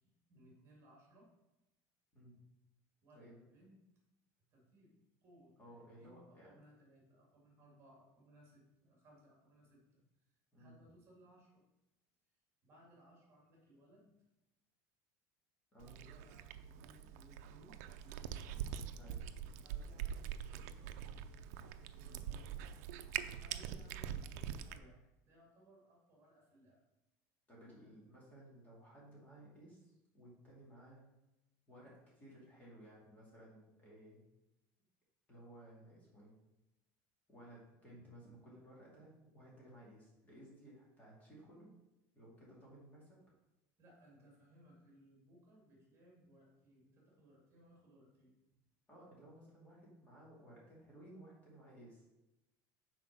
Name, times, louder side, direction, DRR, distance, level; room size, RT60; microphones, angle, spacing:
voice 1, 0.0-1.3 3.0-3.8 4.5-10.0 10.3-11.6 12.6-14.1 15.8-18.6 19.6-21.4 21.9-22.5 23.0-26.8 43.8-48.4, equal, 30° right, -2 dB, 2.3 m, -64 dB
voice 2, 3.1-3.4 5.6-6.6 10.5-10.7 15.7-16.0 19.0-19.2 22.0-22.3 27.5-31.0 31.7-34.2 35.3-36.3 37.3-41.7 42.1-43.2 48.9-52.0, right 1 dB, 20° left, -5 dB, 2.5 m, -58 dB
Cat, 15.8-24.8, right 9 dB, 85° right, 0.5 m, -44 dB
6.0 x 4.5 x 6.0 m, 0.96 s
cardioid pair, 155°, 8 cm